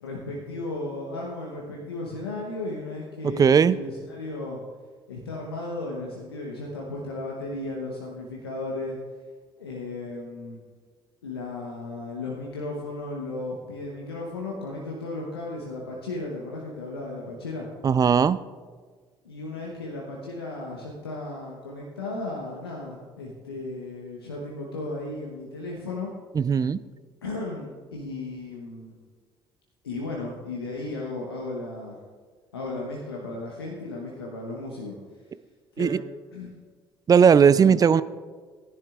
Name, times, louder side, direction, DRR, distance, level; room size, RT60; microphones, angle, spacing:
voice 1, 0.0-4.6 5.1-9.0 9.6-10.6 11.2-17.7 19.2-26.1 27.2-29.0 29.8-32.0 32.5-35.0 35.8-35.9 36.3-36.5 37.6-37.8, left 2 dB, 85° left, -2 dB, 1.1 m, -35 dB
voice 2, 3.2-3.8 17.8-18.4 26.4-26.8 35.8-36.0 37.1-38.0, right 7 dB, 30° right, 16 dB, 0.4 m, -18 dB
16.0 x 10.5 x 2.4 m, 1.5 s
figure-of-eight pair, 50°, 12 cm